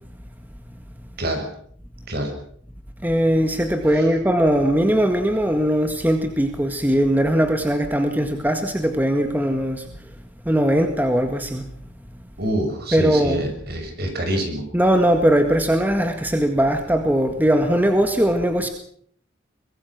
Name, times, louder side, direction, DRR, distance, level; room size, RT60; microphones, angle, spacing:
voice 1, 3.0-9.9 10.4-11.7 12.9-13.4 14.7-18.7, equal, 10° right, 5 dB, 1.8 m, -20 dB
voice 2, 12.4-14.7, right 1 dB, 55° right, 5 dB, 6.7 m, -26 dB
23.5 x 22.0 x 6.1 m, 0.63 s
head